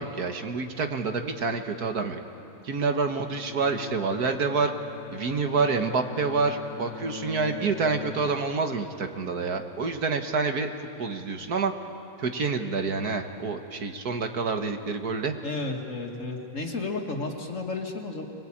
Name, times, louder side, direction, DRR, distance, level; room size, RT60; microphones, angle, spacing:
voice 1, 0.0-2.2 2.6-4.7 5.1-10.7 11.0-11.7 12.2-15.4, right 4 dB, 60° right, 6 dB, 1.8 m, -27 dB
Bowed string instrument, 3.3-8.7, left 7 dB, 75° left, 1.4 m, -41 dB
voice 2, 15.4-18.2, left 3 dB, 45° left, 2 dB, 2.3 m, -32 dB
25.0 x 22.0 x 8.7 m, 2.8 s
omnidirectional pair, 1.9 m